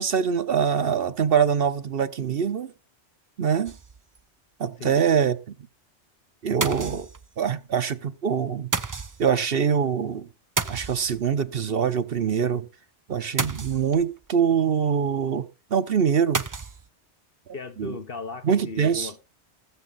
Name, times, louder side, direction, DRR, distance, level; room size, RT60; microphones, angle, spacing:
voice 1, 0.0-2.7 3.4-3.8 4.6-5.4 6.4-7.1 7.4-8.7 9.2-10.3 10.7-12.7 13.1-16.4 17.8-18.0 18.4-19.1, right 7 dB, 55° right, 0.9 m, -24 dB
sound 1, 3.7-4.2 4.6-4.7 4.9-5.0 6.6-7.5 8.7-9.4 10.6-11.4 13.4-14.2 16.3-16.9, right 4 dB, 30° right, 0.3 m, -31 dB
voice 2, 17.5-19.2, left 4 dB, 50° left, 1.3 m, -36 dB
19.5 x 7.1 x 4.0 m
omnidirectional pair, 1.2 m